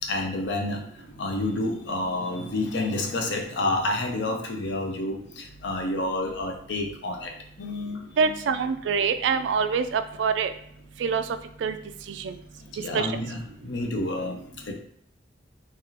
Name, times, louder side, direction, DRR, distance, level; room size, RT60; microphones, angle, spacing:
voice 1, 0.0-8.4 12.7-14.7, left 2 dB, 75° left, 3 dB, 0.6 m, -29 dB
voice 2, 8.2-10.5 11.0-11.2 11.6-11.8 12.2-12.3 12.9-13.1, right 5 dB, 75° right, 10 dB, 0.3 m, -25 dB
3.3 x 2.4 x 2.7 m, 0.68 s
head